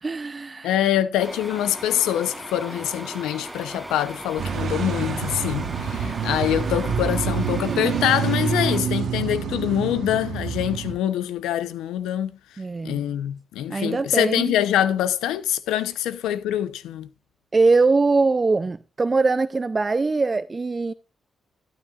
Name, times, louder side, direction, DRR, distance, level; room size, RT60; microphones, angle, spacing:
voice 1, 0.0-0.9 12.6-13.0 13.7-14.5 17.5-20.9, right 3 dB, 35° right, 0.4 m, -22 dB
voice 2, 0.6-12.3 12.8-17.1, left 11 dB, 90° left, 0.7 m, -24 dB
sound 1, 1.2-8.8, right 1 dB, 5° right, 1.0 m, -38 dB
sound 2, 4.4-11.0, right 6 dB, 70° right, 1.1 m, -27 dB
12.0 x 11.5 x 2.4 m
supercardioid pair, 55°, 0 cm